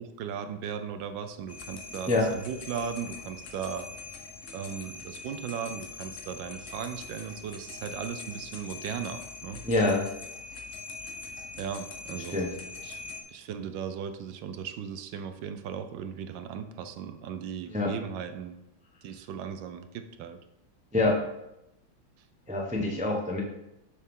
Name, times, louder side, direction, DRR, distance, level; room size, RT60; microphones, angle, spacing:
voice 1, 0.0-4.0 4.5-9.6 11.6-12.4 12.8-18.6 19.0-20.4, right 7 dB, 75° right, 9 dB, 1.3 m, -37 dB
sound 1, 1.5-13.2, left 4 dB, 50° left, 1.0 m, -43 dB
voice 2, 9.7-10.1 12.3-12.5 17.7-17.9 20.9-21.2 22.5-23.4, left 2 dB, 10° right, 0 dB, 0.5 m, -25 dB
6.7 x 6.4 x 3.7 m, 0.88 s
omnidirectional pair, 2.1 m